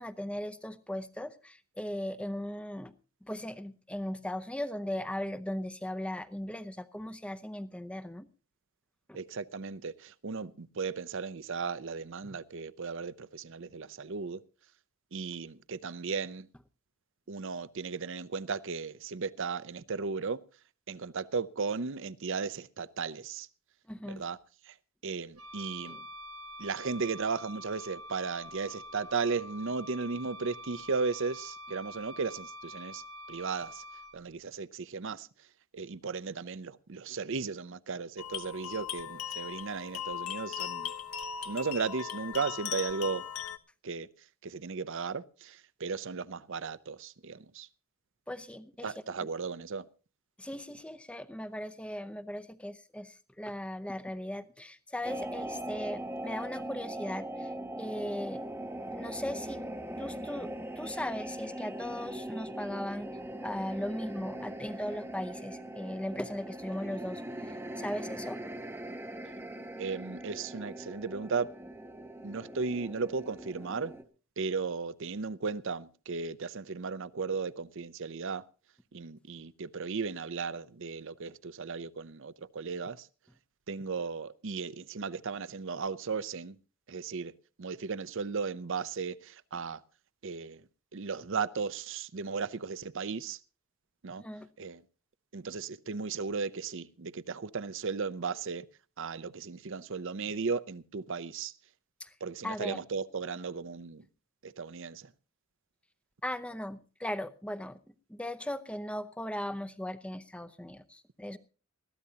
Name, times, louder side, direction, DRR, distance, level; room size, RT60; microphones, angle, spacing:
voice 1, 0.0-2.9 3.2-8.3 9.1-9.2 12.2-12.4 23.9-24.3 25.8-26.0 48.3-48.9 50.4-57.5 57.8-58.4 58.9-59.6 59.9-63.2 63.4-68.4 94.2-94.5 102.0-102.1 102.4-102.8 106.2-107.8 108.1-111.4, left 1 dB, 5° left, 0.7 m, -38 dB
voice 2, 9.1-14.4 15.1-16.5 17.3-20.4 20.9-23.5 24.1-24.7 25.0-26.1 26.6-33.0 33.3-33.8 34.1-35.3 35.7-40.9 41.5-43.3 43.8-44.1 44.4-47.7 48.8-49.9 69.8-71.5 72.2-73.9 74.4-78.4 78.9-83.1 83.7-86.6 86.9-87.3 87.6-89.8 90.2-90.6 90.9-93.4 94.0-94.2 94.6-94.8 95.3-98.7 99.0-101.5 102.2-104.0 104.4-105.1, right 5 dB, 55° right, 0.6 m, -35 dB
Wind instrument woodwind instrument, 25.4-34.2, equal, 85° right, 1.7 m, -46 dB
sound 1, 38.2-43.6, left 9 dB, 75° left, 1.0 m, -38 dB
sound 2, 55.0-74.0, right 1 dB, 10° right, 1.0 m, -41 dB
21.0 x 15.0 x 2.8 m
head